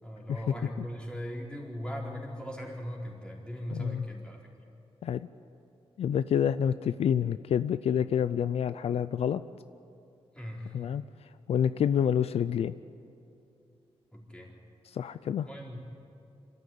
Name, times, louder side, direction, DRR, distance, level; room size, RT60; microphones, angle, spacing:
voice 1, 0.0-4.4 10.3-10.8 14.1-14.5 15.4-15.8, left 1 dB, 10° left, -2 dB, 4.1 m, -39 dB
voice 2, 3.7-4.0 5.0-5.3 6.0-9.4 10.7-11.0 11.5-12.7 14.9-15.5, left 8 dB, 70° left, 14 dB, 0.4 m, -28 dB
25.5 x 13.5 x 8.6 m, 2.7 s
wide cardioid pair, 115°, 11 cm